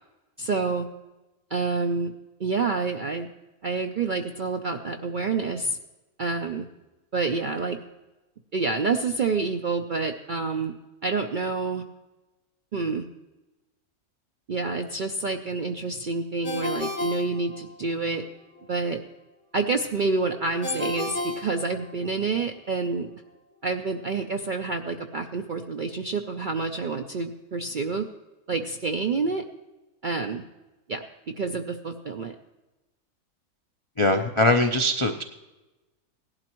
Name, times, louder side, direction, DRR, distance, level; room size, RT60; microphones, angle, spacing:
voice 1, 0.4-0.9 1.5-2.1 2.4-3.3 3.6-5.8 6.2-6.7 7.1-7.8 8.5-10.7 11.0-11.8 12.7-13.1 14.5-18.2 18.7-19.0 19.5-23.1 23.6-28.1 28.5-29.4 30.0-30.4 30.9-32.3, right 4 dB, 60° right, 5 dB, 0.5 m, -28 dB
Ringtone, 16.4-18.1 20.6-22.3, left 2 dB, 75° left, 3.1 m, -33 dB
voice 2, 34.0-35.2, left 1 dB, 50° left, 4 dB, 0.3 m, -21 dB
17.5 x 12.0 x 3.0 m, 1.1 s
omnidirectional pair, 1.5 m